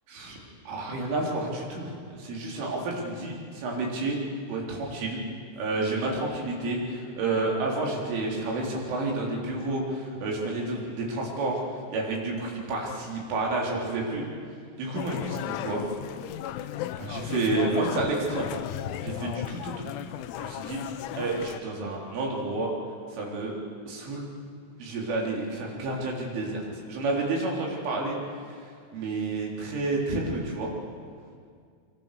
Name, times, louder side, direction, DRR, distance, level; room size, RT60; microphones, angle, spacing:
voice 1, 0.7-4.2 4.5-5.2 5.5-11.6 11.9-14.2 14.8-15.8 17.0-18.6 19.0-19.9 20.4-20.8 21.1-22.7 23.1-23.6 23.9-24.3 24.8-28.2 28.9-30.7, right 2 dB, 80° right, -2 dB, 6.3 m, -30 dB
sound 1, 15.0-21.6, left 12 dB, 90° left, 3.3 m, -35 dB
26.0 x 24.0 x 6.9 m, 2.2 s
omnidirectional pair, 5.5 m